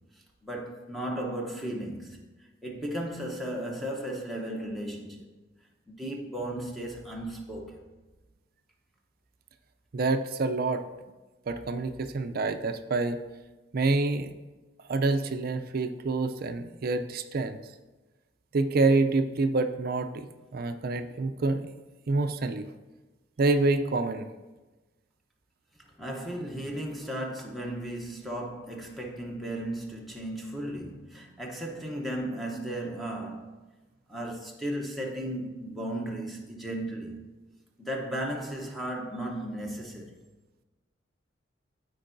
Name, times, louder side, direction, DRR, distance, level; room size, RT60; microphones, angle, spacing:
voice 1, 0.4-2.2 2.6-5.3 5.9-7.8 26.0-33.5 34.1-37.3 37.8-40.2, right 1 dB, ahead, 0.9 m, -35 dB
voice 2, 9.9-10.8 11.5-13.2 13.7-14.3 14.9-17.6 18.5-21.7 22.1-22.7 23.4-24.3, right 3 dB, 55° right, 0.5 m, -27 dB
13.5 x 4.6 x 2.6 m
head